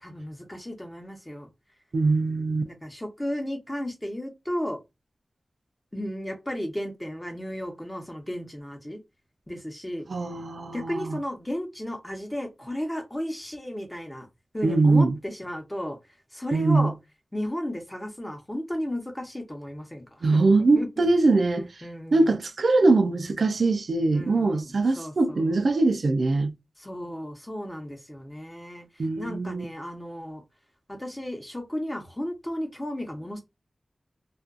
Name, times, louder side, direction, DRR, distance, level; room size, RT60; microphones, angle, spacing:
voice 1, 0.0-1.5 2.6-4.8 5.9-9.0 9.5-10.1 10.7-14.3 14.5-16.0 16.3-16.9 17.3-21.1 21.8-22.3 24.1-25.5 26.8-30.4 30.9-33.4, equal, 15° left, 0.8 m, -34 dB
voice 2, 1.9-2.7 10.1-11.2 14.6-15.1 16.5-16.9 20.2-21.7 22.1-26.5 29.0-29.6, right 3 dB, 75° right, 0.3 m, -22 dB
2.4 x 2.3 x 2.5 m
wide cardioid pair, 65°, 0 cm